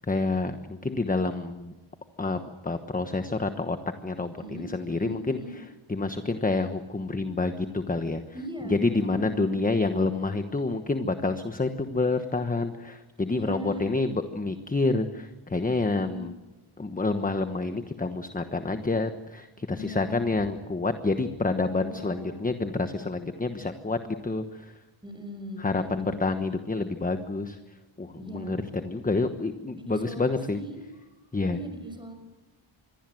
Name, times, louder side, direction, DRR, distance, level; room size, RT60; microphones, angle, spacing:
voice 1, 0.1-1.7 2.2-3.8 4.0-8.2 8.7-16.3 16.8-24.7 25.6-27.6 28.0-30.6 31.3-31.6, left 3 dB, 15° left, 8 dB, 1.2 m, -28 dB
voice 2, 4.4-5.5 8.3-9.6 13.3-14.0 15.7-16.3 19.7-20.3 21.6-22.4 25.0-26.2 28.2-28.6 29.7-30.8 31.5-32.1, equal, 10° right, 6 dB, 5.9 m, -40 dB
26.5 x 22.5 x 7.8 m, 1.1 s
wide cardioid pair, 165°, 50 cm